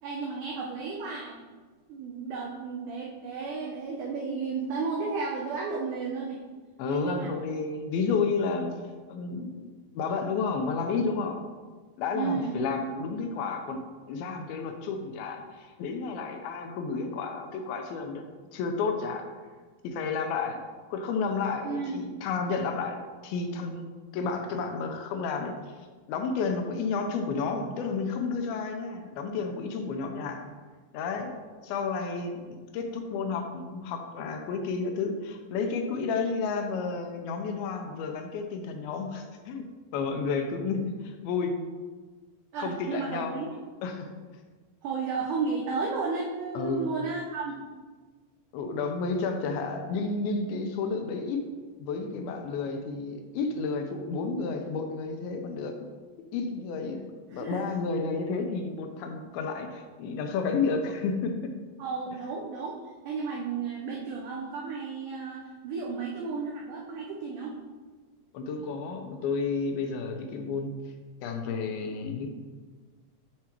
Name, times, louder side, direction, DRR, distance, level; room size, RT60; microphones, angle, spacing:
voice 1, 0.0-1.3 1.9-6.4 6.8-7.3 12.1-12.6 21.6-22.0 42.5-43.5 44.8-47.5 57.3-57.6 61.8-62.8 63.0-67.6, right 4 dB, 90° right, -2 dB, 1.8 m, -33 dB
voice 2, 6.8-8.7 9.1-11.4 12.0-13.8 14.1-18.2 18.5-19.3 19.8-20.6 20.9-23.9 24.1-25.5 26.1-30.5 30.9-31.3 31.6-39.6 39.9-41.5 42.6-43.3 43.8-44.2 46.5-46.9 48.5-51.4 51.8-55.8 56.3-57.0 57.3-61.5 68.3-70.7 71.2-72.3, left 4 dB, 80° left, 4 dB, 2.4 m, -31 dB
7.6 x 4.6 x 2.9 m, 1.4 s
omnidirectional pair, 4.5 m